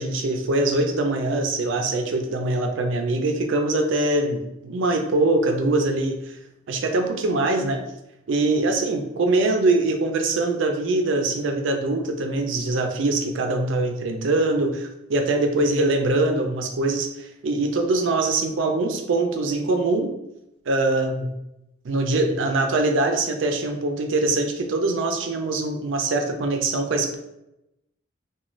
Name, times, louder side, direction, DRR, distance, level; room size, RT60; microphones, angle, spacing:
voice 1, 0.0-6.4 6.7-7.8 8.3-20.1 20.7-21.3 21.8-27.2, right 2 dB, 70° right, 4 dB, 0.4 m, -23 dB
3.0 x 2.3 x 2.5 m, 0.88 s
head